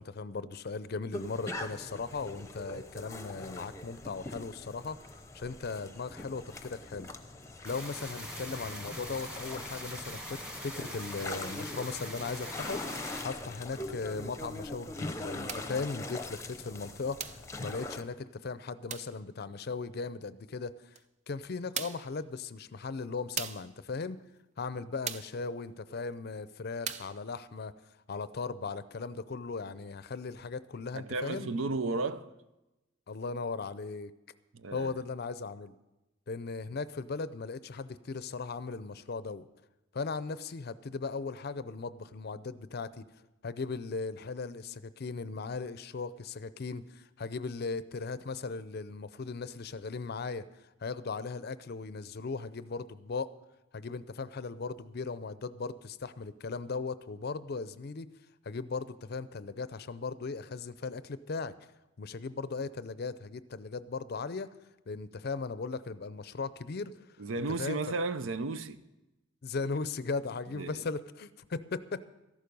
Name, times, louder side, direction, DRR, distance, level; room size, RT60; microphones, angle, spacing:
voice 1, 0.0-5.1 5.3-7.1 7.6-21.0 21.3-24.2 24.6-27.7 28.1-31.5 33.1-34.1 34.7-35.7 36.3-39.5 39.9-43.1 43.4-50.5 50.8-53.3 53.7-58.1 58.4-61.6 62.0-64.5 64.9-67.1 67.6-67.8 69.4-72.1, left 4 dB, 50° left, 0.5 m, -38 dB
sound 1, 1.1-18.0, left 2 dB, 15° left, 0.8 m, -42 dB
sound 2, 7.6-13.2, equal, 5° right, 1.6 m, -42 dB
sound 3, 15.5-15.8 17.2-17.5 18.9-19.2 20.9-21.0 21.7-22.1 23.4-23.7 25.0-25.4 26.8-27.2, right 7 dB, 35° right, 0.5 m, -38 dB
voice 2, 30.9-32.4 34.5-35.0 67.2-68.8 70.5-70.8, right 3 dB, 80° right, 0.6 m, -34 dB
14.0 x 11.5 x 5.3 m
head